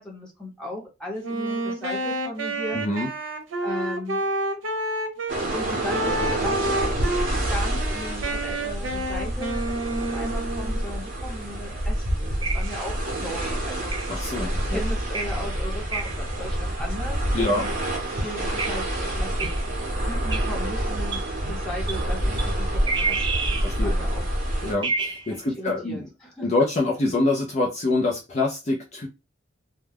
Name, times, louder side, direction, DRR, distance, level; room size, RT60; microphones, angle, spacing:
voice 1, 0.0-2.8 3.6-4.2 5.4-14.0 14.7-17.7 18.2-19.5 20.1-22.2 22.4-24.2 25.6-26.5, left 1 dB, 5° left, -3 dB, 0.9 m, -37 dB
Wind instrument woodwind instrument, 1.2-5.4 5.9-7.3 7.7-10.9, right 1 dB, 85° right, 0.6 m, -29 dB
voice 2, 2.7-3.1 14.1-14.8 17.3-17.6 23.6-23.9 24.6-26.1 26.4-29.1, left 2 dB, 35° left, -1 dB, 0.5 m, -25 dB
sound 1, 5.3-24.7, right 1 dB, 45° right, 0.8 m, -27 dB
sound 2, 12.4-12.9 13.9-14.3 15.1-15.6 15.9-16.3 17.6-17.7 18.6-18.8 19.4-19.6 20.3-20.5 21.1-21.3 21.9-22.0 22.4-22.5 22.9-23.8 24.8-25.4, right 4 dB, 25° right, 0.4 m, -29 dB
2.2 x 2.2 x 3.3 m, 0.26 s
head